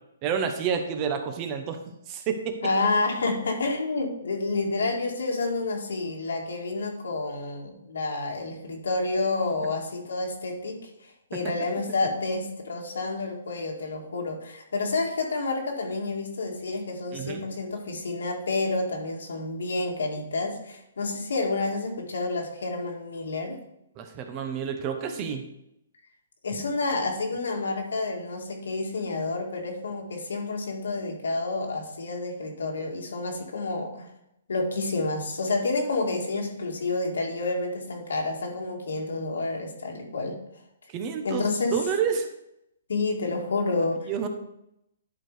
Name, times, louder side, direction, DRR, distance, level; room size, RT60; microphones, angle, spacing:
voice 1, 0.2-1.8 2.1-2.5 17.1-17.4 24.0-25.4 40.9-42.3 44.1-44.3, right 7 dB, 25° right, 6 dB, 1.0 m, -29 dB
voice 2, 2.6-23.6 26.4-34.1 34.5-40.4 41.2-41.8 42.9-44.1, left 3 dB, 85° left, 1 dB, 2.1 m, -29 dB
11.0 x 4.7 x 4.9 m, 0.81 s
hypercardioid pair, 160°, 0 cm